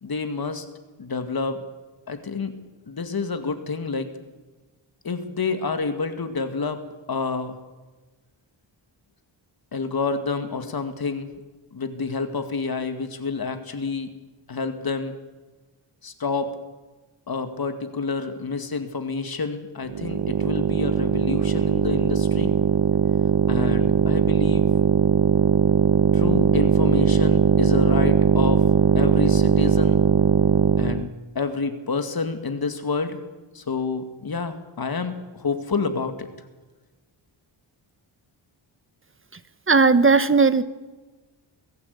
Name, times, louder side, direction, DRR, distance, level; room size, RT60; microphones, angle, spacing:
voice 1, 0.0-0.7 1.0-1.6 2.1-2.5 2.9-4.1 5.0-6.8 7.1-7.6 9.7-11.3 11.7-14.1 14.5-15.2 16.0-16.5 17.3-22.5 23.5-24.7 26.1-28.6 28.9-30.0 30.8-33.2 33.5-36.3, left 4 dB, 50° left, 8 dB, 2.2 m, -28 dB
sound 1, 19.8-31.1, right 8 dB, 60° right, 1.0 m, -20 dB
voice 2, 39.7-40.6, right 4 dB, 25° right, 13 dB, 1.2 m, -16 dB
22.5 x 14.5 x 8.5 m, 1.2 s
wide cardioid pair, 100°, 47 cm